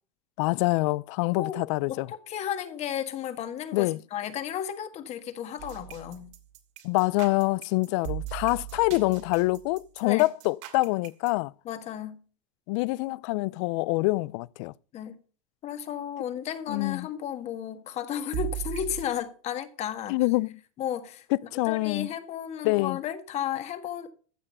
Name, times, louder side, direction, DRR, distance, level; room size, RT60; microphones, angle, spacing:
voice 1, 0.4-2.1 3.7-4.0 6.8-11.5 12.7-14.7 16.7-17.1 20.1-20.6 21.3-22.1 22.6-23.0, left 22 dB, 60° left, 0.4 m, -26 dB
voice 2, 1.9-6.3 10.0-10.2 11.7-12.2 14.9-15.2 15.6-20.2 20.8-24.1, left 10 dB, 40° left, 1.7 m, -34 dB
sound 1, 5.6-11.3 18.3-19.0, right 15 dB, 65° right, 2.7 m, -38 dB
14.5 x 6.6 x 5.4 m
supercardioid pair, 120°, 17 cm